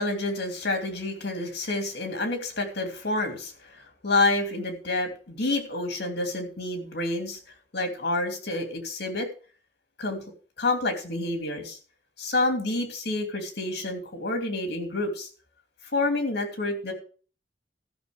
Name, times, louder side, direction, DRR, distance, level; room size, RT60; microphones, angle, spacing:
voice 1, 0.0-7.4 7.7-9.3 10.0-10.2 10.6-11.8 12.2-15.3 15.9-16.9, left 2 dB, 65° left, 4 dB, 2.8 m, -28 dB
13.0 x 6.1 x 6.6 m, 0.40 s
head